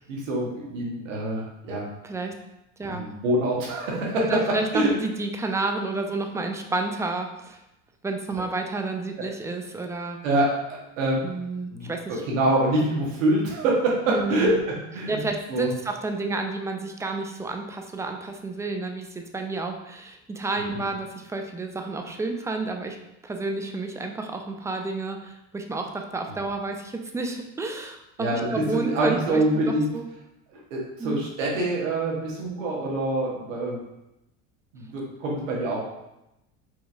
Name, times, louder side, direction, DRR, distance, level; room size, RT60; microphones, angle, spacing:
voice 1, 0.1-1.8 2.8-4.4 4.7-4.9 9.2-9.3 10.2-11.3 11.7-15.2 15.5-15.7 28.2-29.9 30.5-33.8 34.7-35.8, right 1 dB, 90° right, -3 dB, 1.2 m, -25 dB
voice 2, 2.0-2.3 2.8-3.1 4.3-7.6 8.0-10.2 11.2-12.2 14.1-14.6 15.1-23.0 23.2-30.0 31.0-31.2, right 3 dB, 10° right, 4 dB, 0.3 m, -30 dB
4.6 x 2.8 x 2.5 m, 0.90 s
hypercardioid pair, 85°, 38 cm